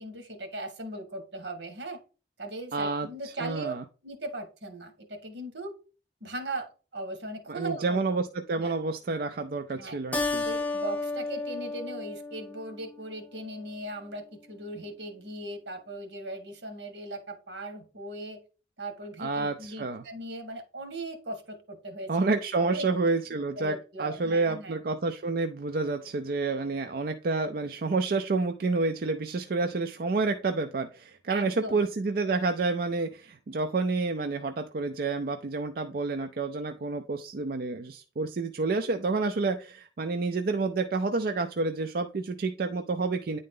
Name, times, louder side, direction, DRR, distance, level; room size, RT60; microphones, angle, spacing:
voice 1, 0.0-2.0 2.4-3.7 4.0-5.8 6.2-8.0 8.5-8.7 9.7-10.0 10.4-18.4 18.8-22.9 23.6-24.8 31.3-31.9, right 1 dB, 85° right, 7 dB, 1.5 m, -38 dB
voice 2, 2.7-3.1 3.4-3.8 7.5-10.4 19.2-20.0 22.1-43.4, right 3 dB, 55° right, 6 dB, 0.4 m, -29 dB
Keyboard (musical), 10.1-13.0, left 3 dB, 10° left, 0.5 m, -32 dB
9.5 x 3.8 x 3.7 m, 0.36 s
head